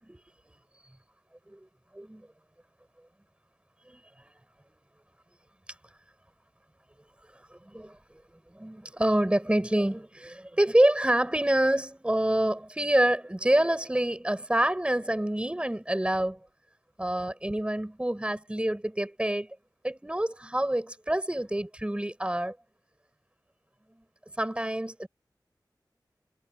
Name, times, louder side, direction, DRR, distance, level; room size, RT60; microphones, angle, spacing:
voice 1, 1.9-2.3 3.9-4.0 7.3-8.2 8.5-16.4 17.0-19.5 19.8-22.6 23.9-24.0 24.4-25.1, right 1 dB, 15° right, 6.9 m, -27 dB
wide cardioid pair, 75°, 8 cm